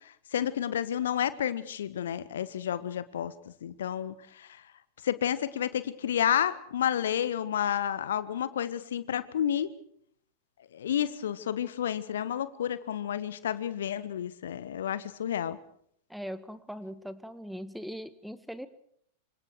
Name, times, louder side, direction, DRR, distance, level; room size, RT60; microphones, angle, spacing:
voice 1, 0.3-3.3 3.6-4.5 5.0-9.7 10.7-15.6, left 10 dB, 60° left, 16 dB, 1.5 m, -30 dB
voice 2, 16.1-18.7, equal, ahead, 14 dB, 1.6 m, -40 dB
28.5 x 26.0 x 4.6 m, 0.65 s
figure-of-eight pair, 90°, 0 cm